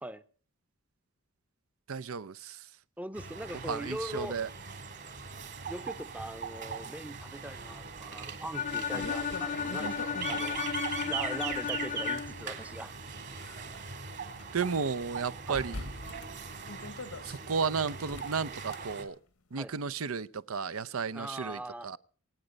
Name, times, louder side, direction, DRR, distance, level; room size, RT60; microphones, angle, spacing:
voice 1, 1.9-2.6 3.6-4.5 14.5-15.9 17.2-19.2 19.5-22.0, right 5 dB, 70° right, 0.7 m, -33 dB
voice 2, 3.0-4.4 5.7-13.0 15.5-15.6 19.5-19.7 21.1-21.9, right 1 dB, 5° right, 0.7 m, -41 dB
sound 1, 3.1-19.0, right 5 dB, 55° right, 3.2 m, -40 dB
sound 2, 8.0-8.1 8.6-10.6 11.3-12.3 13.0-14.4 14.8-14.9 15.5-17.4 18.0-18.8, left 2 dB, 80° left, 1.2 m, -44 dB
Bowed string instrument, 8.5-12.5, left 7 dB, 40° left, 0.7 m, -34 dB
27.0 x 8.9 x 5.2 m
head